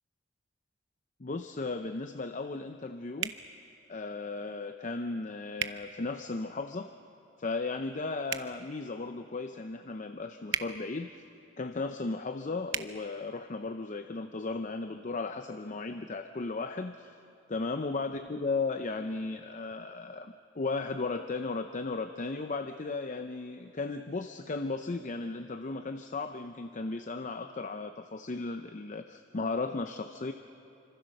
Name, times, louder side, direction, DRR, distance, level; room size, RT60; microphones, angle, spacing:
voice 1, 1.2-3.3 3.9-6.9 7.4-11.2 11.6-17.2 17.5-30.3, left 3 dB, 40° left, 8 dB, 0.6 m, -35 dB
sound 1, 3.2-3.4 5.6-5.8 8.2-8.5 10.5-10.7 12.7-12.9, right 9 dB, 85° right, 0.9 m, -33 dB
26.5 x 26.0 x 6.5 m, 2.8 s
head